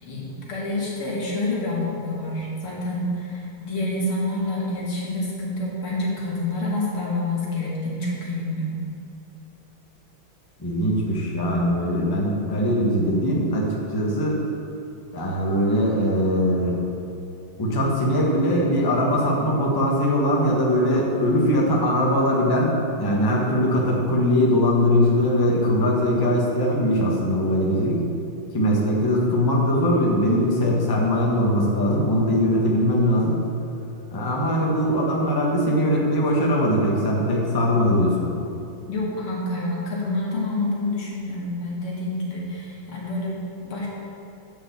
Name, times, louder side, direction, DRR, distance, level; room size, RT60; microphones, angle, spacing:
voice 1, 0.0-8.7 38.9-43.9, left 2 dB, 85° left, -5 dB, 2.9 m, -28 dB
voice 2, 10.6-14.4 15.1-16.8 17.6-28.0 28.5-33.3 34.1-38.3, equal, 15° left, -3 dB, 1.0 m, -21 dB
9.6 x 5.2 x 7.3 m, 2.7 s
omnidirectional pair, 2.3 m